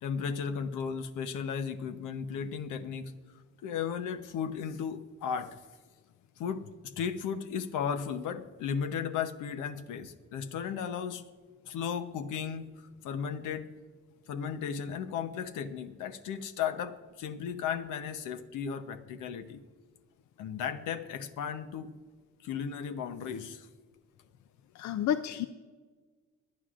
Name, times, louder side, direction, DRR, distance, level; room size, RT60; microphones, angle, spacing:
voice 1, 0.0-3.1 3.6-5.6 6.4-11.3 11.7-13.7 14.3-19.6 20.4-21.9 22.4-23.7, left 7 dB, 85° left, 9 dB, 0.9 m, -35 dB
voice 2, 24.7-25.5, left 10 dB, 70° left, 11 dB, 0.5 m, -30 dB
22.0 x 9.7 x 2.5 m, 1.4 s
cardioid pair, 90°, 30 cm